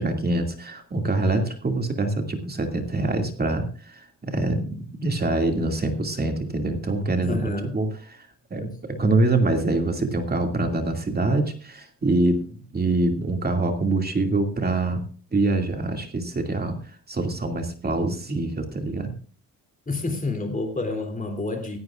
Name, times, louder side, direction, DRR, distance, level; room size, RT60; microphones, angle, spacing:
voice 1, 0.0-15.0 15.3-16.8 17.1-19.1, right 2 dB, 30° right, 4 dB, 2.4 m, -25 dB
voice 2, 7.2-7.8 19.9-21.8, left 2 dB, 25° left, 5 dB, 3.1 m, -29 dB
16.5 x 16.5 x 2.5 m, 0.38 s
cardioid pair, 115°, 33 cm